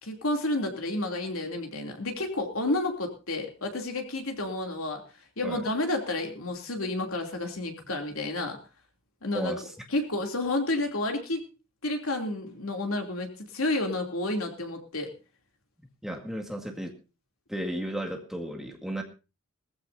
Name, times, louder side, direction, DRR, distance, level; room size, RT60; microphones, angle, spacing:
voice 1, 0.0-8.6 9.2-9.5 9.9-11.4 11.8-15.1, left 2 dB, 85° left, 3 dB, 2.9 m, -30 dB
voice 2, 9.3-9.7 16.0-17.0 17.5-19.0, right 1 dB, ahead, 1 dB, 2.0 m, -34 dB
19.5 x 14.5 x 2.7 m, 0.31 s
head